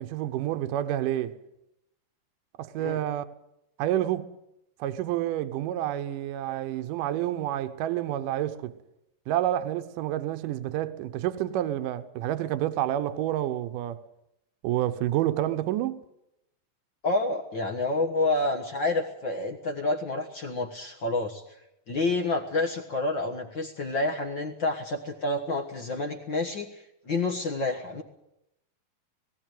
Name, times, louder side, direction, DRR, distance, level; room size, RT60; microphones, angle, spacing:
voice 1, 0.0-1.3 2.6-3.2 3.8-4.3 4.8-8.7 9.3-14.0 14.6-16.0, right 12 dB, 75° right, 2.4 m, -29 dB
voice 2, 17.0-21.4 21.9-28.0, left 2 dB, 55° left, 1.4 m, -29 dB
18.0 x 17.5 x 9.2 m
omnidirectional pair, 4.0 m